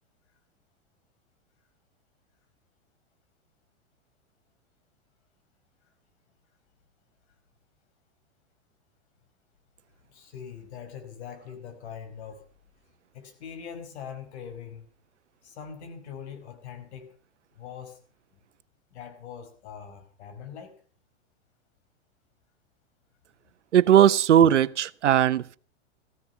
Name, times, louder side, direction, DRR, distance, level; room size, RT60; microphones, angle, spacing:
voice 1, 10.1-12.4 13.1-14.8 15.4-17.2 17.5-18.0 18.3-18.4 18.9-20.8, left 7 dB, 70° left, 5.4 m, -42 dB
voice 2, 23.7-25.6, right 10 dB, 90° right, 0.8 m, -18 dB
16.5 x 15.0 x 5.9 m
hypercardioid pair, 120°, 35 cm